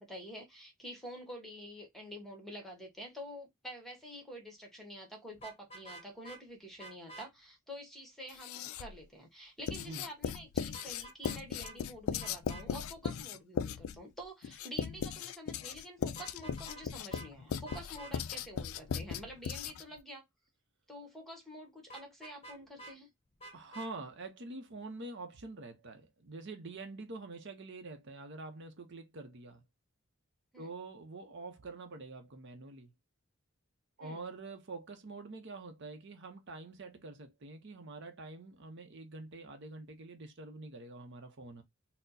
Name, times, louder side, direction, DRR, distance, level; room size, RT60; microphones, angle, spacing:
voice 1, 0.0-20.2 20.9-23.1 30.5-30.7 34.0-34.2, equal, ahead, 1.0 m, -48 dB
Vehicle horn car horn honking, 5.3-6.4 6.8-7.3 10.7-11.4 11.6-11.8 12.2-12.7 16.1-16.9 17.1-17.3 17.7-18.1 21.9-23.0 23.4-23.9, right 2 dB, 30° left, 0.8 m, -49 dB
Writing, 8.3-9.0 9.7-20.0, left 7 dB, 75° left, 0.3 m, -38 dB
voice 2, 23.5-29.6 30.6-32.9 34.0-41.6, right 3 dB, 55° right, 0.7 m, -46 dB
4.2 x 2.0 x 2.6 m
head